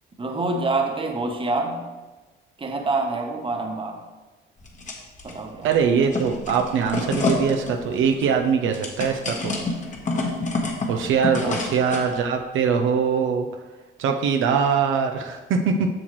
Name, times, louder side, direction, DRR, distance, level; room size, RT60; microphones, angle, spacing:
voice 1, 0.2-1.9 2.6-4.0 5.2-5.7 11.4-11.6, right 3 dB, 25° right, 4 dB, 1.0 m, -26 dB
sound 1, 4.6-5.3 5.7-12.1, left 3 dB, 40° left, 1.3 m, -28 dB
voice 2, 5.6-9.5 10.9-13.5 14.0-15.9, right 6 dB, 80° right, 4 dB, 0.6 m, -22 dB
7.7 x 6.1 x 3.1 m, 1.2 s
cardioid pair, 90°, 20 cm